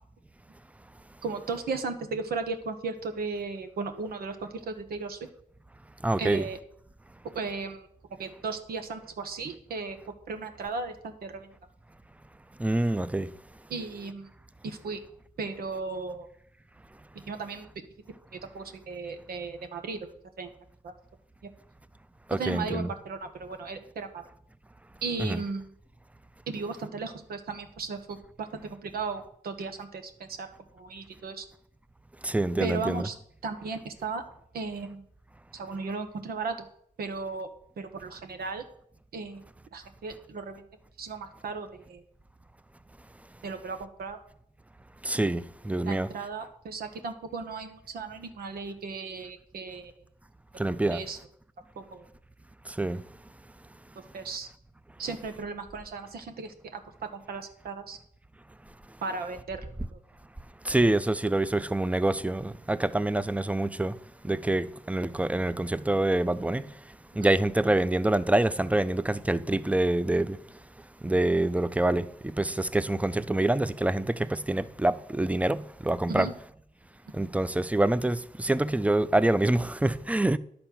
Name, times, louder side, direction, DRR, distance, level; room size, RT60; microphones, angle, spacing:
voice 1, 1.2-5.2 6.2-6.6 7.3-7.9 8.2-10.0 10.3-11.5 13.7-14.3 14.6-15.0 15.4-16.3 17.3-17.7 18.5-20.0 20.4-20.5 20.8-20.9 22.3-24.2 25.0-25.7 26.5-30.5 30.7-31.4 32.6-33.2 33.4-34.2 34.5-35.0 35.5-36.7 37.0-37.5 37.8-38.6 39.1-39.4 39.7-40.7 41.0-42.0 43.4-44.2 45.8-49.9 50.8-51.2 51.9-52.0 54.1-54.5 55.0-56.8 57.1-58.0 59.0-59.6 59.9-60.0 67.2-67.3 76.1-76.3, right 4 dB, 85° right, 1.1 m, -36 dB
voice 2, 6.0-6.4 12.6-13.3 22.3-22.9 25.2-25.4 32.2-33.1 45.0-46.1 50.6-51.0 52.8-53.0 60.6-63.9 64.2-66.7 67.2-70.4 71.0-72.1 72.4-76.3 77.1-80.4, right 1 dB, 10° right, 0.5 m, -26 dB
10.5 x 4.3 x 7.5 m
cardioid pair, 55°, 15 cm